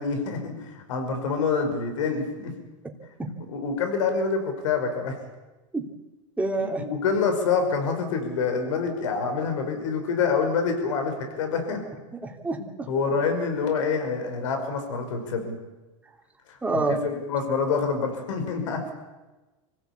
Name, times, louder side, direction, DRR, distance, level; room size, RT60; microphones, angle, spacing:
voice 1, 0.0-2.5 3.5-5.2 6.6-11.8 12.9-15.6 16.5-16.6 16.9-18.9, left 5 dB, 80° left, 5 dB, 5.6 m, -26 dB
voice 2, 6.4-6.8 12.2-12.9 16.6-17.2, right 3 dB, 10° right, 1 dB, 3.1 m, -27 dB
25.0 x 16.0 x 8.5 m, 1.1 s
supercardioid pair, 130°, 16 cm